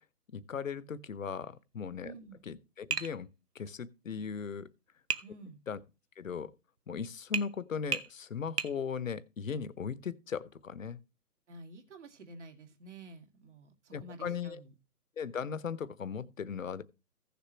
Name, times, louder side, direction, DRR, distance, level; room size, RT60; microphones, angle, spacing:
voice 1, 0.3-2.1 2.5-3.3 3.5-4.7 5.7-5.8 6.2-6.5 6.9-11.0 13.9-14.6 15.2-16.8, left 6 dB, 55° left, 0.9 m, -38 dB
voice 2, 2.0-2.4 5.2-5.6 11.5-14.7, right 2 dB, 50° right, 2.3 m, -50 dB
Tap, 2.9-3.2 5.1-5.3 7.3-7.5 7.9-8.1 8.6-8.8, right 5 dB, 85° right, 1.1 m, -33 dB
15.5 x 6.9 x 3.1 m
figure-of-eight pair, 150°, 46 cm